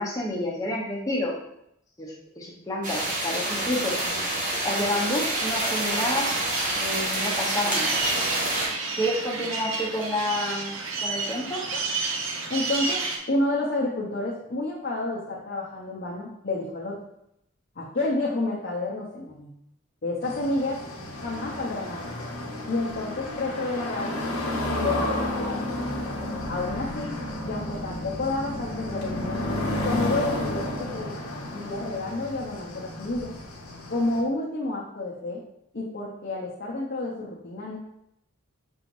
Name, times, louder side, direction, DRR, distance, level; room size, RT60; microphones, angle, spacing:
voice 1, 0.0-1.3 2.0-4.0 4.6-6.3 6.8-7.9 9.0-10.7 11.0-11.7, left 1 dB, 15° left, -4 dB, 0.9 m, -29 dB
sound 1, 2.8-8.7, right 1 dB, 40° right, 1.1 m, -27 dB
sound 2, 5.3-13.2, right 3 dB, 65° right, 0.7 m, -31 dB
voice 2, 12.5-17.0 17.8-19.5 20.0-20.8 21.2-22.1 22.7-24.2 24.5-25.7 26.5-27.1 27.4-29.4 29.8-31.1 31.5-33.3 33.9-35.4 35.7-37.8, left 2 dB, 45° left, -4 dB, 0.7 m, -30 dB
sound 3, 20.2-34.2, left 1 dB, 85° left, 0.9 m, -32 dB
6.2 x 3.1 x 2.6 m, 0.77 s
head